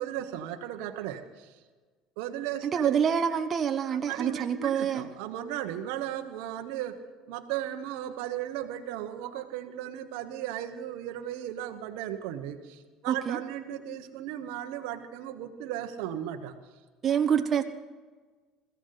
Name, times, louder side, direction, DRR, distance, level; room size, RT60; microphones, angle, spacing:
voice 1, 0.0-1.6 2.2-3.0 3.9-7.0 7.3-16.6, right 11 dB, 70° right, 6 dB, 1.2 m, -36 dB
voice 2, 2.7-5.1 13.0-13.4 17.0-17.6, right 8 dB, 40° right, 7 dB, 1.1 m, -26 dB
21.5 x 15.0 x 4.1 m, 1.4 s
hypercardioid pair, 70°, 0 cm